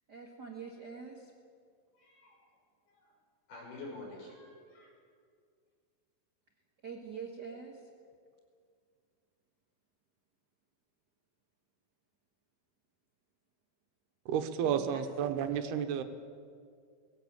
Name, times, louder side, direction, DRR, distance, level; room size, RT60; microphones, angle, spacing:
voice 1, 0.1-1.3 6.8-7.8 14.6-15.4, right 5 dB, 60° right, 1 dB, 1.0 m, -45 dB
voice 2, 1.9-2.4 2.9-3.1 3.5-4.9, left 2 dB, 70° left, -3 dB, 8.1 m, -48 dB
voice 3, 14.3-16.0, right 8 dB, 80° right, 8 dB, 3.1 m, -31 dB
20.0 x 17.5 x 8.8 m, 2.2 s
omnidirectional pair, 4.6 m